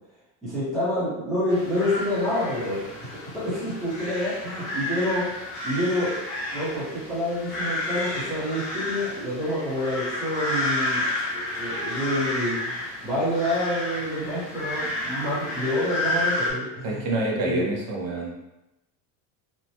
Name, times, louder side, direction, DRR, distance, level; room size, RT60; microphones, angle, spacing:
voice 1, 0.4-2.9 3.3-5.4 5.6-6.1 6.5-17.1 17.4-17.6, left 1 dB, ahead, -13 dB, 0.8 m, -28 dB
sound 1, 1.5-16.5, left 1 dB, 40° left, 0.7 m, -31 dB
voice 2, 16.8-18.4, right 2 dB, 40° right, -2 dB, 0.6 m, -27 dB
2.9 x 2.1 x 2.8 m, 0.95 s
cardioid pair, 180°, 40 cm